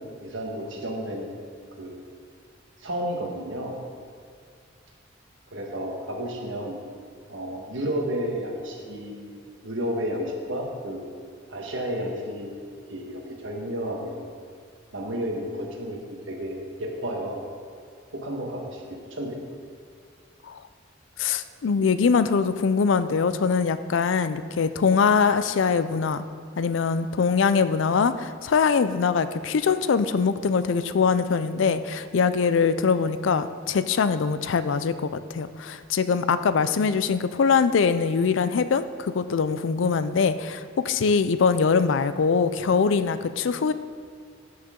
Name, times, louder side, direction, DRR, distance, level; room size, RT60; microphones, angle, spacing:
voice 1, 0.2-1.4 1.8-2.0 2.8-3.7 5.5-6.7 7.3-9.3 9.6-11.1 11.5-12.5 12.9-14.3 14.9-16.0 16.3-17.4 18.1-18.8 19.1-19.4, equal, 70° right, 0 dB, 1.6 m, -31 dB
voice 2, 21.2-26.2 26.6-43.7, left 5 dB, 70° left, 13 dB, 0.4 m, -23 dB
13.0 x 6.4 x 3.8 m, 2.2 s
head